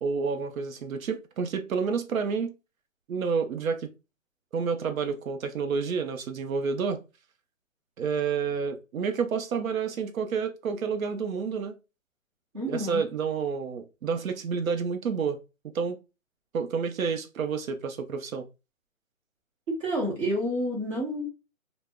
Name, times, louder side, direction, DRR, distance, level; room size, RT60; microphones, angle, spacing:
voice 1, 0.0-2.5 3.1-3.9 4.5-7.0 8.0-11.8 12.7-15.4 15.7-16.0 16.5-18.5, right 5 dB, 85° right, 7 dB, 0.6 m, -29 dB
voice 2, 12.5-13.0 19.7-21.3, equal, 25° right, -4 dB, 0.9 m, -29 dB
2.1 x 2.0 x 3.3 m, 0.29 s
hypercardioid pair, 160°, 40 cm